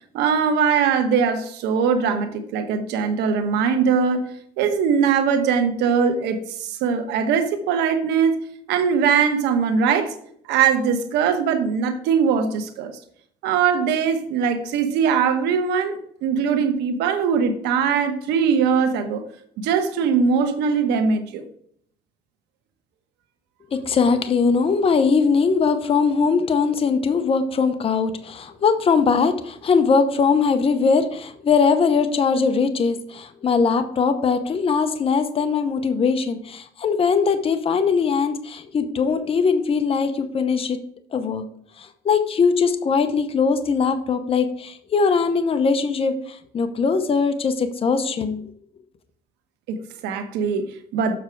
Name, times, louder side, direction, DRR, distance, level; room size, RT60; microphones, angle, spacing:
voice 1, 0.1-8.4 8.7-10.1 10.5-12.9 13.4-19.2 19.6-21.4 49.7-51.1, right 6 dB, 90° right, 1.1 m, -21 dB
voice 2, 23.7-40.8 41.1-41.4 41.8-48.4, left 5 dB, 35° left, 0.8 m, -21 dB
7.4 x 6.1 x 4.6 m
cardioid pair, 110°, 17 cm